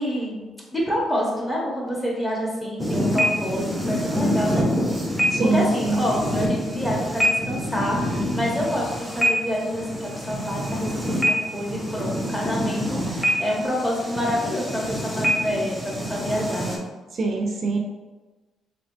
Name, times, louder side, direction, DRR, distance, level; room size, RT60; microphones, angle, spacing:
voice 1, 0.0-4.7 5.4-15.8 16.1-16.8, equal, 15° left, -4 dB, 1.1 m, -27 dB
sound 1, 2.8-16.8, equal, ahead, 0.7 m, -26 dB
voice 2, 5.3-6.0 17.1-17.8, right 3 dB, 50° right, 2 dB, 0.4 m, -23 dB
3.2 x 2.9 x 2.7 m, 1.2 s
cardioid pair, 90°, 0 cm